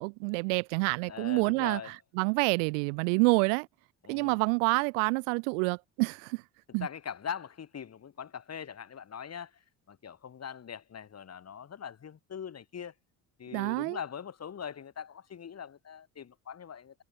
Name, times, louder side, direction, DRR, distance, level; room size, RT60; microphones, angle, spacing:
voice 1, 0.0-3.7 4.1-6.4 6.7-6.9 13.5-14.0, right 34 dB, 90° right, 1.2 m, -28 dB
voice 2, 1.1-1.9 4.0-4.4 6.8-9.5 9.9-12.9 13.4-16.9, left 8 dB, 45° left, 5.8 m, -41 dB
supercardioid pair, 80°, 36 cm